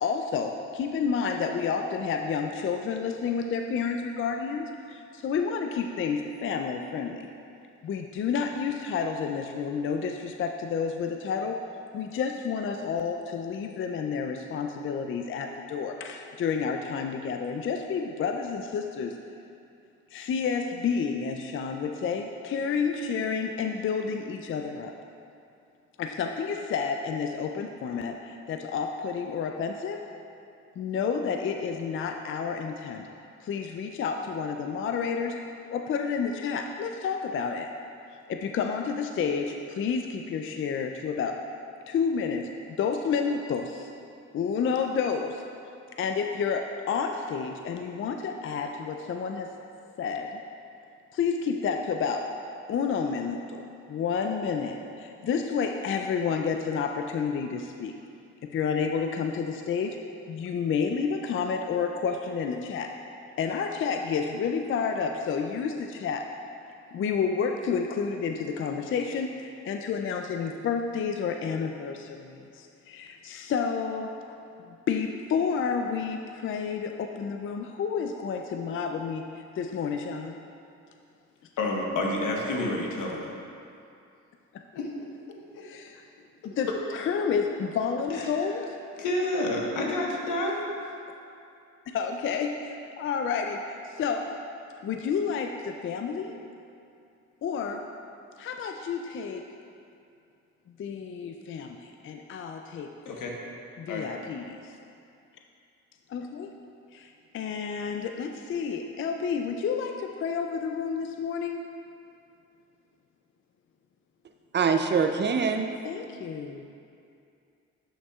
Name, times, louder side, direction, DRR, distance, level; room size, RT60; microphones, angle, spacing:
voice 1, 0.0-7.3 7.8-11.6 11.9-19.1 20.1-24.9 26.0-30.0 30.8-33.1 33.4-35.4 35.7-37.7 38.3-41.4 41.9-43.9 44.3-45.4 46.0-49.5 50.0-50.4 51.1-52.3 52.7-53.6 53.9-57.9 58.5-60.0 60.3-62.9 63.4-66.3 66.9-74.3 74.7-80.4 85.6-86.0 86.4-86.7 86.9-88.8 91.9-94.2 94.8-96.4 97.4-97.8 98.4-99.4 100.8-103.2 103.8-104.7 106.1-106.5 106.9-111.6 115.8-116.6, left 6 dB, 45° left, 4 dB, 0.4 m, -30 dB
voice 2, 81.6-83.3 84.7-84.9 85.5-85.6 88.1-88.3 89.0-90.6 103.0-103.3 103.9-104.1, left 1 dB, 80° left, -1 dB, 1.2 m, -29 dB
voice 3, 114.5-115.7, right 5 dB, 35° right, 6 dB, 0.5 m, -24 dB
11.0 x 6.1 x 2.4 m, 2.5 s
cardioid pair, 90°, 30 cm